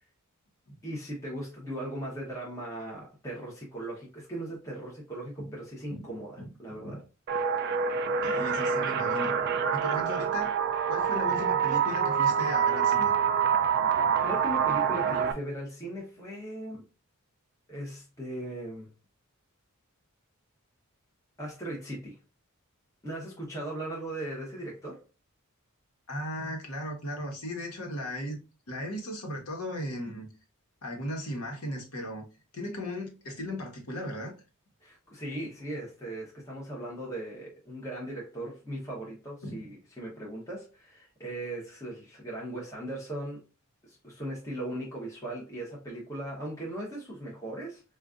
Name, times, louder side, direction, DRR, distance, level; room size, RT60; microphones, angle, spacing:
voice 1, 0.8-7.0 11.3-11.4 13.9-16.8 17.7-18.9 21.4-22.2 23.0-25.0 34.8-43.4 43.8-47.8, right 1 dB, 15° left, 1.0 m, -38 dB
voice 2, 6.4-7.0 8.2-9.4 9.7-10.5 10.9-13.1 26.1-28.4 28.7-30.3 30.8-32.3 32.5-34.3 39.4-39.7, left 1 dB, 75° left, 1.2 m, -36 dB
sound 1, 7.3-15.3, right 7 dB, 50° right, 0.3 m, -26 dB
4.9 x 2.4 x 2.4 m
head